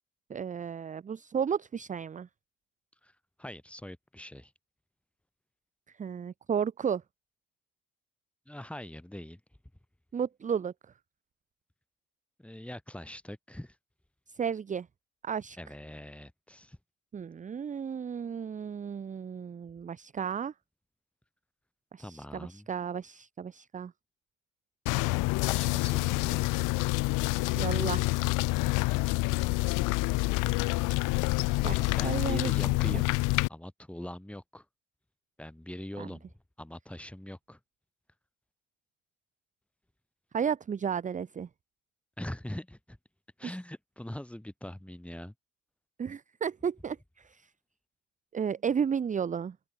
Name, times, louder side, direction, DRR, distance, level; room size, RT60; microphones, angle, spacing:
voice 1, 0.3-2.3 6.0-7.0 10.1-10.7 14.3-14.9 15.2-15.6 17.1-20.5 21.9-23.9 27.5-28.1 31.6-32.5 32.8-33.0 36.0-36.1 40.3-41.5 46.0-47.5 48.3-49.6, right 7 dB, 25° right, 0.7 m, -33 dB
voice 2, 3.0-4.5 8.5-9.4 12.4-13.8 15.6-16.8 22.0-22.7 25.5-26.5 31.7-33.1 33.5-34.7 35.4-36.3 36.6-37.6 42.2-43.0 43.4-45.3, left 1 dB, 5° left, 2.4 m, -42 dB
sound 1, 24.9-33.5, left 24 dB, 70° left, 0.9 m, -27 dB
open air
supercardioid pair, 85°, 32 cm